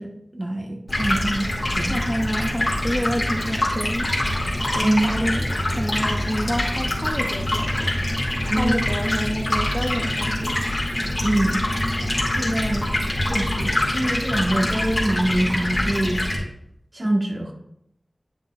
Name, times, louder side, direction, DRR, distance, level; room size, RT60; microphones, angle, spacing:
voice 1, 0.0-2.0 4.8-5.1 8.5-8.8 11.2-11.6 12.4-12.9 13.2-16.2 16.9-17.5, right 1 dB, 50° right, 0 dB, 1.5 m, -24 dB
Stream, 0.9-16.4, left 1 dB, 45° left, 2.6 m, -24 dB
voice 2, 1.9-4.1 4.4-5.5 5.7-7.9 8.5-10.6, equal, ahead, 2 dB, 0.7 m, -28 dB
10.5 x 6.2 x 2.5 m, 0.78 s
wide cardioid pair, 65°, 0 cm